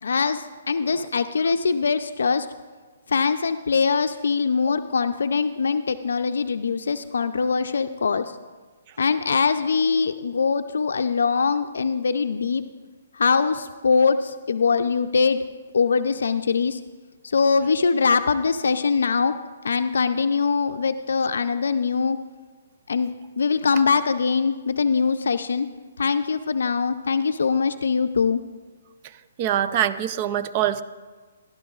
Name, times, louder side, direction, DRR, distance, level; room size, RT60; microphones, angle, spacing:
voice 1, 0.0-2.5 3.1-8.4 9.0-12.6 13.1-15.4 15.7-16.8 17.2-19.4 19.6-22.2 22.9-23.1 23.4-25.7 26.0-28.4, left 5 dB, 80° left, 9 dB, 0.4 m, -22 dB
voice 2, 29.4-30.8, right 10 dB, 35° right, 14 dB, 0.4 m, -23 dB
16.0 x 11.5 x 2.4 m, 1.4 s
hypercardioid pair, 155°, 0 cm